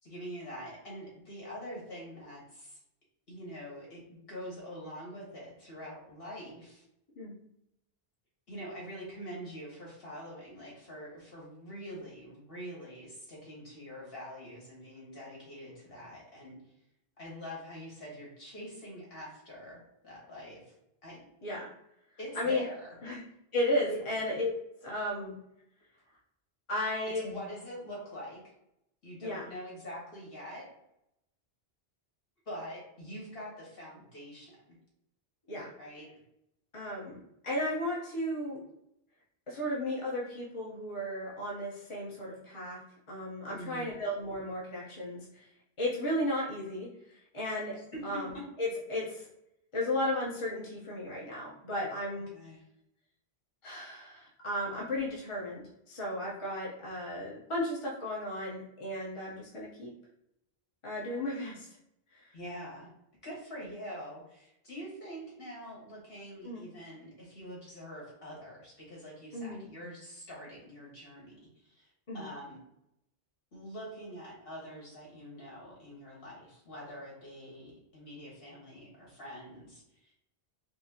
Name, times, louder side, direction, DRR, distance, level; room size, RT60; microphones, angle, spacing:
voice 1, 0.0-2.8 3.3-6.8 8.5-16.6 17.2-20.6 21.0-21.2 22.2-22.9 23.9-24.0 27.2-28.5 29.0-30.7 32.4-34.6 35.8-36.1 43.5-43.9 47.9-48.4 52.3-52.6 62.3-62.9 63.2-71.9 72.1-72.6 73.5-80.1, equal, 65° left, -5 dB, 1.6 m, -45 dB
voice 2, 22.3-22.7 23.0-23.2 23.5-24.5 24.8-25.3 26.7-27.3 29.2-29.4 35.5-35.7 36.7-37.2 37.4-38.6 39.5-42.8 43.1-45.5 45.8-47.8 48.0-48.3 48.6-49.3 49.7-52.3 53.6-59.9 60.8-61.7 62.1-62.3 66.4-66.7 69.3-69.6 72.1-72.3, left 1 dB, 30° left, -5 dB, 0.9 m, -34 dB
4.6 x 2.0 x 2.8 m, 0.81 s
omnidirectional pair, 1.0 m